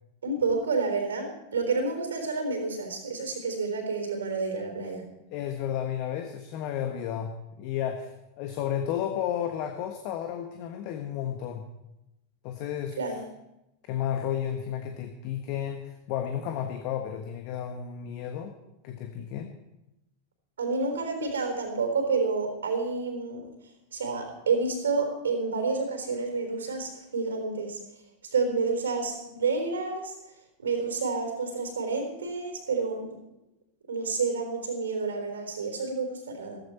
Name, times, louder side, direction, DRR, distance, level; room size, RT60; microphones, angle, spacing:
voice 1, 0.2-5.0 13.0-13.2 20.6-23.4 23.9-27.8 28.3-30.1 30.6-33.1 33.9-36.6, right 4 dB, 70° right, 5 dB, 3.7 m, -29 dB
voice 2, 5.3-11.7 12.4-13.0 13.9-18.5 18.8-19.5, left 10 dB, 45° left, 6 dB, 1.4 m, -32 dB
15.5 x 15.0 x 4.4 m, 0.90 s
figure-of-eight pair, 90°, 0 cm